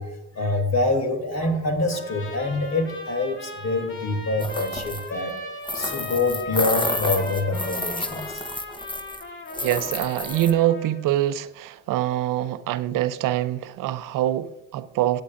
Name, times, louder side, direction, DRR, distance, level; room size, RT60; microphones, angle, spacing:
voice 1, 0.0-5.3 5.7-8.4, left 2 dB, 55° left, 2.9 m, -25 dB
Trumpet, 1.9-11.0, left 2 dB, 40° left, 2.7 m, -38 dB
sound 1, 4.4-5.1 5.7-9.2 9.5-10.5, left 1 dB, 15° left, 1.1 m, -30 dB
voice 2, 9.6-15.2, right 13 dB, 80° right, 0.6 m, -24 dB
16.5 x 8.6 x 2.5 m
supercardioid pair, 60°, 32 cm